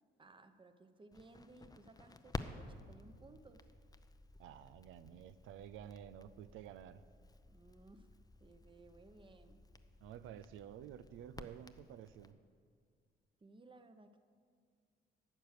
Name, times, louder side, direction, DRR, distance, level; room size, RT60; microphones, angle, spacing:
voice 1, 0.2-3.7 7.5-8.1 8.4-9.6 13.4-14.2, right 2 dB, 25° right, 9 dB, 0.9 m, -60 dB
Crackle, 1.1-12.3, left 3 dB, 20° left, 0.6 m, -52 dB
voice 2, 4.4-7.0 10.0-12.4, right 10 dB, 90° right, 14 dB, 0.5 m, -51 dB
12.0 x 7.8 x 6.6 m, 2.1 s
cardioid pair, 90°, 20 cm